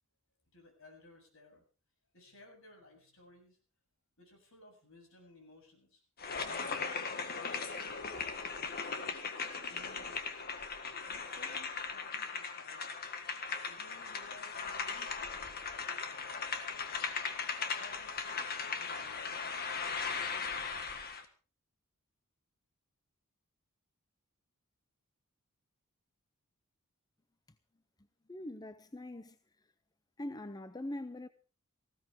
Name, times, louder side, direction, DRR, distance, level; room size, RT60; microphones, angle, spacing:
voice 1, 0.5-1.6 2.1-3.6 4.2-6.0 6.6-8.9 9.6-10.4 11.1-12.9 13.7-16.4 17.7-20.3, left 2 dB, 65° left, 7.3 m, -59 dB
sound 1, 6.2-21.3, left 5 dB, 45° left, 1.8 m, -38 dB
voice 2, 28.3-29.4 30.2-31.3, left 1 dB, 20° left, 0.6 m, -42 dB
19.0 x 16.0 x 3.6 m
head